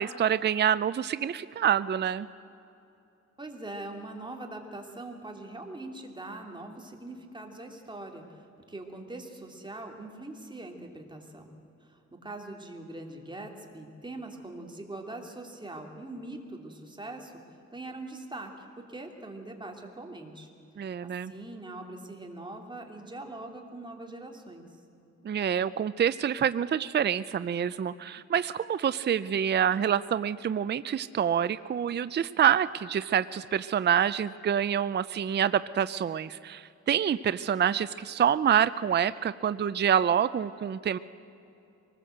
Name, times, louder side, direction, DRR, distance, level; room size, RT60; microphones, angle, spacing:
voice 1, 0.0-2.3 20.8-21.3 25.2-41.0, right 9 dB, 35° right, 14 dB, 0.5 m, -27 dB
voice 2, 3.4-11.5 11.8-17.4 17.7-20.5 21.0-24.7, right 2 dB, 15° right, 2 dB, 2.9 m, -42 dB
24.0 x 20.0 x 7.9 m, 2.8 s
wide cardioid pair, 115°, 29 cm